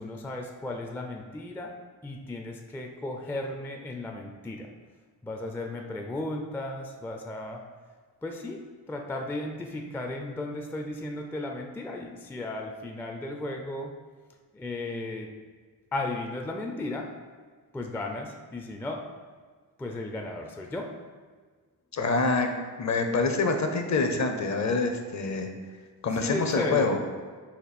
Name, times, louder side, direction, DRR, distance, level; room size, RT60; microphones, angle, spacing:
voice 1, 0.0-4.7 5.2-7.6 8.2-13.9 14.5-15.3 15.9-17.1 17.7-19.0 19.8-20.9 26.1-26.9, left 2 dB, 5° left, 2 dB, 0.3 m, -35 dB
voice 2, 21.9-25.5 26.0-27.0, left 3 dB, 45° left, 5 dB, 0.6 m, -26 dB
4.2 x 2.6 x 4.2 m, 1.5 s
cardioid pair, 70°, 41 cm